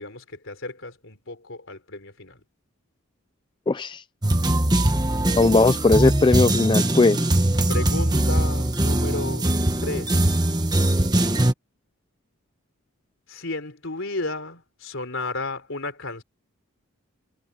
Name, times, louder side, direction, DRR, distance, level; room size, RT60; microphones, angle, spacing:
voice 1, 0.0-2.4 7.7-9.5 9.8-10.4 13.3-16.2, left 2 dB, 60° left, 4.1 m, -33 dB
voice 2, 3.7-4.0 5.4-7.2, left 3 dB, 20° left, 0.3 m, -18 dB
sound 1, 4.2-11.5, right 1 dB, 20° right, 1.3 m, -21 dB
head